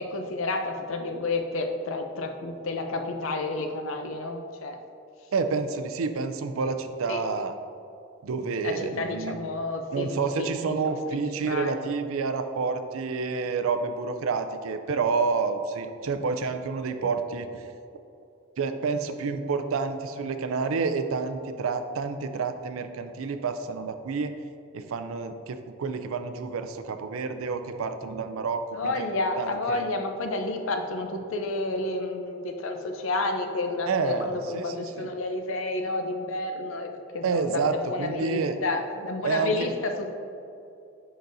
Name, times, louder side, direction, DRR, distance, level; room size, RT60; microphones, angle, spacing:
voice 1, 0.0-4.8 7.1-7.2 8.6-11.9 28.7-40.1, left 2 dB, 80° left, 5 dB, 0.6 m, -30 dB
voice 2, 5.3-7.5 8.2-9.4 9.9-17.5 18.6-24.3 24.7-29.1 29.4-29.8 33.9-34.6 35.0-35.1 37.2-37.7 38.0-38.5 39.2-39.7, right 4 dB, 90° right, 8 dB, 0.4 m, -29 dB
10.0 x 4.0 x 2.6 m, 2.6 s
head